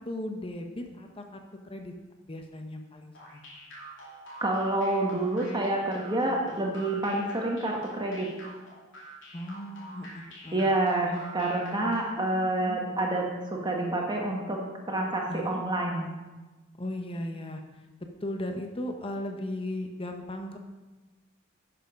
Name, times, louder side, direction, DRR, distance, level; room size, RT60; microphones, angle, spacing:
voice 1, 0.0-1.9 2.3-3.4 9.3-10.7 12.6-12.8 15.3-15.6 16.8-17.6 18.2-20.6, left 1 dB, 30° left, 4 dB, 0.8 m, -37 dB
sound 1, 3.1-12.3, right 1 dB, 70° left, 2.9 m, -46 dB
voice 2, 4.4-8.3 10.5-14.6 14.9-16.0, right 2 dB, 25° right, 0 dB, 1.4 m, -28 dB
10.5 x 6.9 x 5.2 m, 1.2 s
head